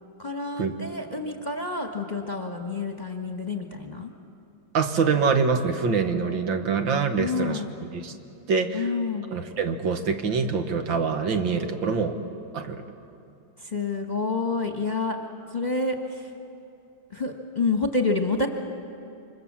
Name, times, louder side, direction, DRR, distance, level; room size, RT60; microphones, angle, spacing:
voice 1, 0.2-4.1 7.2-7.8 8.7-9.3 13.6-15.2 15.5-16.3 17.1-18.5, left 3 dB, 25° left, 3 dB, 1.2 m, -28 dB
voice 2, 4.7-7.6 7.9-8.1 8.5-8.9 9.3-12.2 12.5-12.8, right 5 dB, 75° right, 6 dB, 2.2 m, -25 dB
28.0 x 25.0 x 7.4 m, 2.7 s
omnidirectional pair, 2.1 m